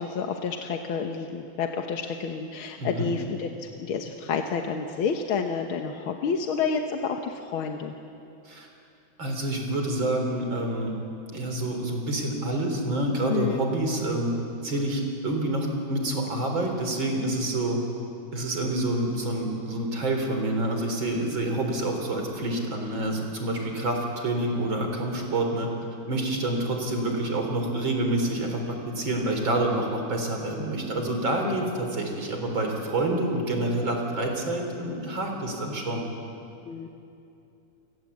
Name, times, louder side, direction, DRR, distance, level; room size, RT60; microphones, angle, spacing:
voice 1, 0.0-7.9 13.3-13.6 31.4-31.6 36.7-36.9, left 6 dB, 85° left, 4 dB, 2.0 m, -29 dB
voice 2, 2.8-3.1 8.4-8.7 9.2-10.9 11.3-14.3 14.6-17.8 18.3-25.7 26.1-36.1, right 1 dB, 70° right, 3 dB, 4.7 m, -27 dB
29.0 x 20.5 x 8.5 m, 2.7 s
omnidirectional pair, 2.2 m